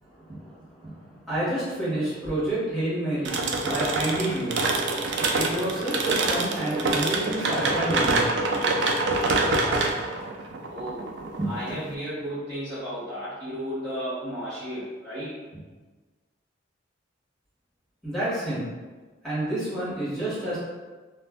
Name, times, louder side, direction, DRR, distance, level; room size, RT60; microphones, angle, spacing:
voice 1, 0.0-4.6 5.3-8.3 18.0-18.7 19.2-20.6, right 1 dB, ahead, -11 dB, 1.2 m, -29 dB
sound 1, 3.2-11.9, right 3 dB, 65° right, 0.3 m, -26 dB
voice 2, 10.7-15.6, equal, 25° right, -13 dB, 0.8 m, -33 dB
2.4 x 2.1 x 3.4 m, 1.3 s
head